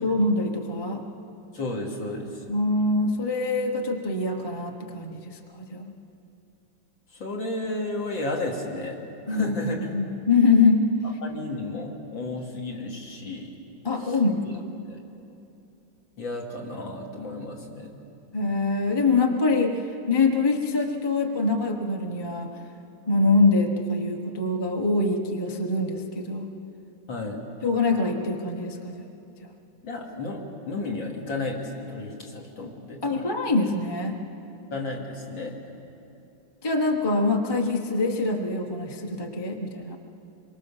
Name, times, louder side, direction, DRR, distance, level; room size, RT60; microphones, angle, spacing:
voice 1, 0.0-1.0 2.5-5.9 9.3-10.8 13.8-14.7 18.3-22.5 23.1-26.5 27.6-29.1 29.4-29.5 33.0-34.2 36.6-40.0, left 3 dB, 15° left, 3 dB, 0.9 m, -24 dB
voice 2, 1.5-2.4 7.1-9.0 9.3-9.9 11.2-13.6 14.0-14.2 14.9-15.0 16.2-18.0 27.1-27.4 29.8-33.2 34.7-35.6, left 2 dB, 80° left, -1 dB, 3.5 m, -33 dB
26.0 x 23.5 x 7.3 m, 2.8 s
omnidirectional pair, 2.1 m